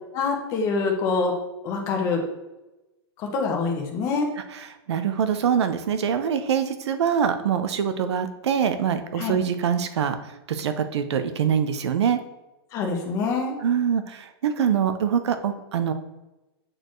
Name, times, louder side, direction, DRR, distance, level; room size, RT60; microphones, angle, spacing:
voice 1, 0.1-1.3 1.6-2.2 3.2-4.3 9.2-9.4 12.7-13.5, left 4 dB, 25° left, 1 dB, 1.0 m, -25 dB
voice 2, 4.9-10.2 10.5-12.2 13.6-15.9, right 8 dB, 85° right, 10 dB, 0.8 m, -24 dB
8.9 x 4.3 x 3.1 m, 1.0 s
supercardioid pair, 175°, 14 cm